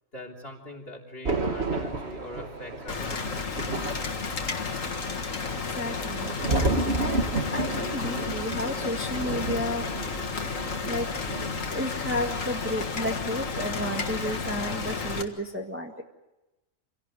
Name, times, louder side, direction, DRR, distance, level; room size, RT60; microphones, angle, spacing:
voice 1, 0.1-3.8, left 1 dB, 45° left, 3 dB, 3.8 m, -43 dB
Thunder, 1.2-11.8 12.1-12.4, right 2 dB, 55° right, 2.2 m, -32 dB
Rain, 2.9-15.2, left 5 dB, 75° left, 2.1 m, -32 dB
voice 2, 5.6-6.4 7.0-9.9 10.9-11.1 11.7-16.0, left 1 dB, 10° right, 1 dB, 1.8 m, -32 dB
27.0 x 17.5 x 9.2 m, 1.0 s
omnidirectional pair, 1.4 m